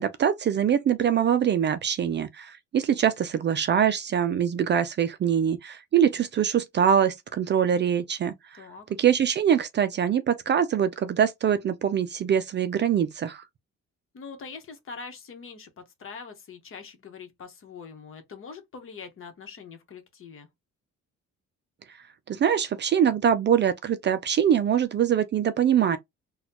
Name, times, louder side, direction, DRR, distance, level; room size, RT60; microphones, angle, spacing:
voice 1, 0.0-8.6 9.0-13.4 22.3-26.0, right 8 dB, 40° right, 0.4 m, -23 dB
voice 2, 14.1-20.5, left 5 dB, 45° left, 1.1 m, -43 dB
4.1 x 2.3 x 2.8 m
cardioid pair, 130°, 30 cm